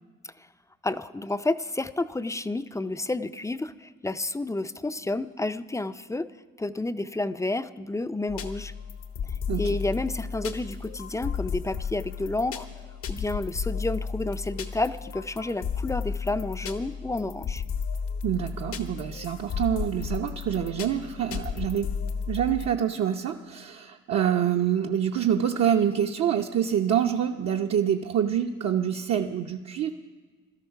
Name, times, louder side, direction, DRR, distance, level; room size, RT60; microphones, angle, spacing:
voice 1, 0.8-6.3 6.6-8.7 9.6-12.7 13.1-17.6, left 2 dB, 10° left, 12 dB, 0.4 m, -30 dB
sound 1, 8.3-22.7, left 6 dB, 80° left, 1.3 m, -33 dB
voice 2, 18.2-21.9 22.3-29.9, right 9 dB, 60° right, 1 dB, 0.8 m, -26 dB
16.5 x 12.5 x 5.7 m, 1.4 s
cardioid pair, 90°, 30 cm